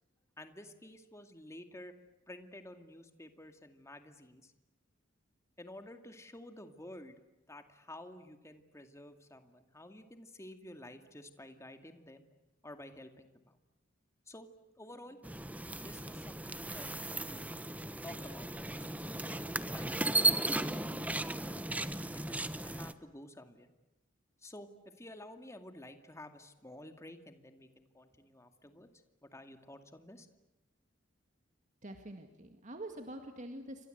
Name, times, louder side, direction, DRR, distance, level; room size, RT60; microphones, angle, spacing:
voice 1, 0.4-2.0 2.3-4.5 5.6-7.2 7.5-12.2 12.6-13.6 14.3-14.5 14.8-15.2 15.8-17.5 18.0-21.7 22.1-23.7 24.4-28.9 29.2-30.3, left 1 dB, 15° left, 7 dB, 2.3 m, -51 dB
sound 1, 15.2-22.9, right 2 dB, 10° right, 1.0 m, -35 dB
voice 2, 31.8-33.9, right 1 dB, 40° right, 5 dB, 2.0 m, -45 dB
29.5 x 25.5 x 8.0 m, 1.0 s
head